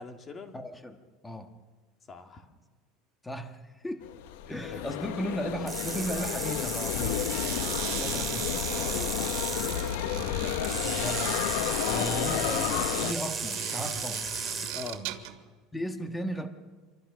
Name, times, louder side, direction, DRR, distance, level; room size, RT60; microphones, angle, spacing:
voice 1, 0.0-0.6 2.1-2.5 4.6-5.1 7.6-8.1 8.9-9.2 14.7-15.0, left 3 dB, 20° left, 4 dB, 2.2 m, -43 dB
voice 2, 0.5-1.5 3.2-4.0 4.5-7.2 7.5-7.7 8.0-8.5 10.1-11.4 11.8-14.2 15.7-16.5, equal, 5° left, 5 dB, 1.5 m, -36 dB
sound 1, 4.0-13.1, left 12 dB, 90° left, 1.0 m, -31 dB
sound 2, 5.7-9.9 10.6-14.9, right 4 dB, 10° right, 2.7 m, -35 dB
sound 3, 7.2-15.4, right 12 dB, 75° right, 2.2 m, -39 dB
27.5 x 23.5 x 6.3 m, 1.3 s
cardioid pair, 165°, 0 cm